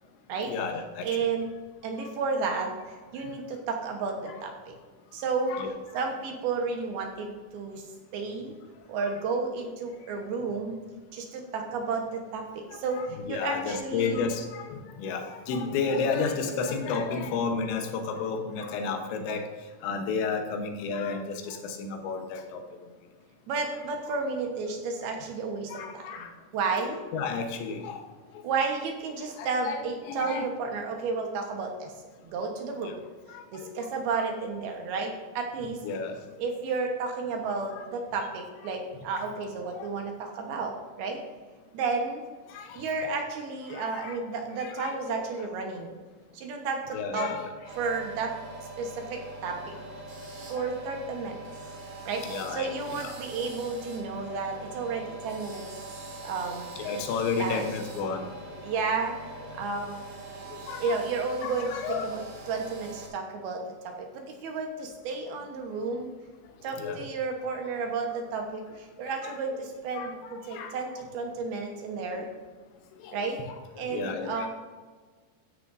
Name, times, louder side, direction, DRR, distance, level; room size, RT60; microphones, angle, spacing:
voice 1, 0.5-1.1 2.0-2.1 2.5-2.6 5.5-5.7 9.0-9.1 12.7-19.5 19.8-22.6 25.7-26.3 27.1-28.0 29.4-30.5 32.8-32.9 33.3-33.7 34.1-34.2 35.8-36.2 37.7-37.8 39.1-39.3 39.8-39.9 42.5-43.0 43.7-44.2 44.6-45.2 46.9-47.5 52.2-53.1 56.8-58.4 60.3-61.0 61.4-62.2 66.7-67.1 69.1-69.4 69.9-70.7 73.0-73.2 73.8-74.5, left 5 dB, 80° left, 4 dB, 3.3 m, -32 dB
voice 2, 1.0-1.5 1.8-4.7 5.1-5.6 5.9-7.8 8.1-8.6 8.9-10.8 11.1-14.2 23.5-26.3 26.5-27.0 28.4-31.9 32.2-33.0 33.5-35.8 36.4-41.2 41.7-42.2 42.8-45.9 46.3-47.3 47.8-48.3 48.8-49.8 50.5-51.4 52.1-55.7 56.2-56.7 57.4-57.7 58.6-60.0 60.8-66.1 66.6-72.3 73.1-73.4 73.8-74.5, right 4 dB, 70° right, 3 dB, 2.7 m, -32 dB
sound 1, 47.6-63.1, right 2 dB, 50° right, 3.2 m, -43 dB
13.5 x 9.3 x 2.6 m, 1.4 s
omnidirectional pair, 5.2 m